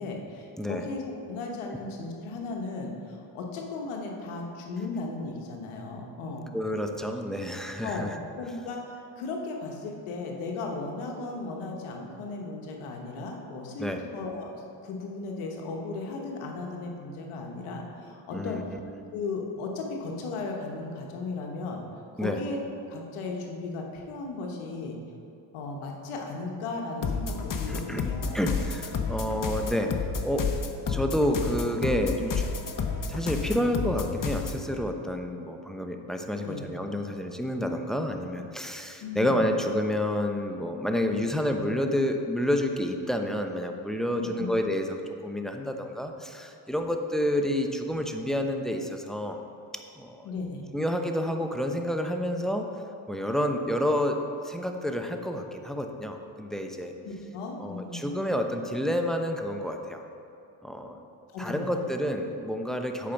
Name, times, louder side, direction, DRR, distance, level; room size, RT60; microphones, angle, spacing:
voice 1, 0.0-6.5 7.8-13.9 14.1-18.6 19.1-21.8 22.1-22.6 22.9-25.0 25.5-28.4 36.4-36.6 39.0-39.4 44.2-44.5 50.2-50.7 57.0-58.1 61.3-61.8, left 3 dB, 90° left, 1 dB, 1.2 m, -36 dB
voice 2, 6.5-8.1 13.8-14.0 18.3-18.8 22.2-22.4 27.7-28.0 28.3-29.9 30.2-30.5 30.9-32.5 33.1-49.4 50.0-50.3 50.7-52.7 53.1-54.2 54.4-56.9 57.6-60.0 60.6-61.0 61.4-63.1, equal, ahead, 4 dB, 0.8 m, -29 dB
sound 1, 27.0-34.6, left 5 dB, 40° left, 0.9 m, -31 dB
8.5 x 5.1 x 5.9 m, 2.6 s
supercardioid pair, 60°, 48 cm